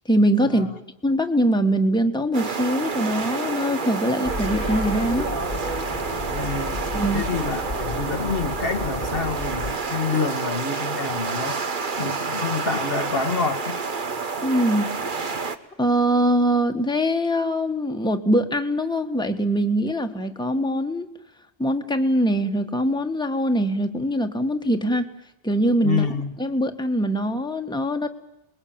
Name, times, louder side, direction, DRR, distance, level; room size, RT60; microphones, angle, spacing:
voice 1, 0.1-0.7 1.0-5.3 6.9-7.2 14.4-14.9 15.8-21.1 21.6-25.0 25.4-26.0 26.4-28.1, equal, 5° left, 5 dB, 1.4 m, -22 dB
sound 1, 2.3-15.6, right 4 dB, 50° right, 1.3 m, -29 dB
sound 2, 4.2-9.7, left 2 dB, 35° left, 1.7 m, -32 dB
voice 2, 6.3-6.8 7.1-13.8 25.8-26.3, left 5 dB, 60° left, 8 dB, 1.4 m, -28 dB
27.5 x 21.0 x 8.8 m, 0.86 s
omnidirectional pair, 1.1 m